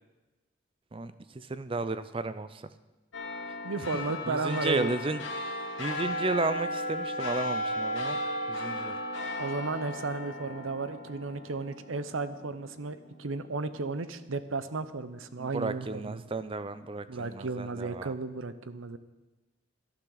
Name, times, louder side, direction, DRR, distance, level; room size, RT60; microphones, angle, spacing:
voice 1, 0.9-2.7 3.7-3.9 4.2-8.2 8.5-9.0 15.4-18.1, right 3 dB, 25° right, 13 dB, 0.5 m, -34 dB
sound 1, 3.1-13.9 14.3-14.4, left 1 dB, 70° left, 2.2 m, -35 dB
voice 2, 3.6-5.0 9.4-16.2 17.1-19.0, right 3 dB, 85° right, 13 dB, 0.7 m, -34 dB
17.5 x 12.0 x 4.0 m, 1.1 s
head